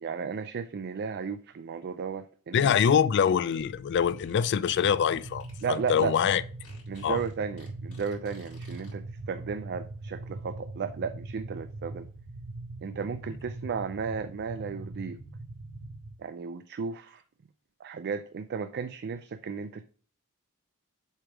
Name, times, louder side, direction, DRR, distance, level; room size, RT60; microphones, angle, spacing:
voice 1, 0.0-2.8 5.6-6.1 6.9-12.1 12.8-15.2 16.2-17.2 17.8-19.8, right 6 dB, 50° right, 0.4 m, -34 dB
voice 2, 2.5-6.4 7.0-7.2, left 7 dB, 55° left, 0.3 m, -24 dB
Fart, 3.4-8.9, left 2 dB, 90° left, 3.5 m, -55 dB
sound 1, 4.7-16.2, right 2 dB, 85° right, 0.8 m, -41 dB
7.3 x 3.4 x 4.5 m
head